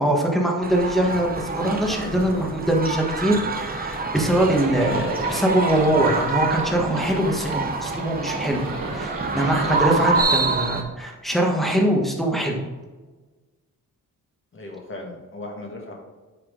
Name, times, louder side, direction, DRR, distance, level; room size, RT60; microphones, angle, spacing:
voice 1, 0.0-8.6 8.9-12.6, right 1 dB, ahead, 0 dB, 1.3 m, -22 dB
sound 1, 0.6-10.8, right 3 dB, 25° right, 0.9 m, -26 dB
Livestock farm animals working animals, 4.3-10.2, right 2 dB, 75° right, 2.6 m, -34 dB
voice 2, 14.5-16.0, left 2 dB, 35° left, 0 dB, 1.8 m, -37 dB
7.7 x 6.0 x 3.9 m, 1.3 s
wide cardioid pair, 160°, 34 cm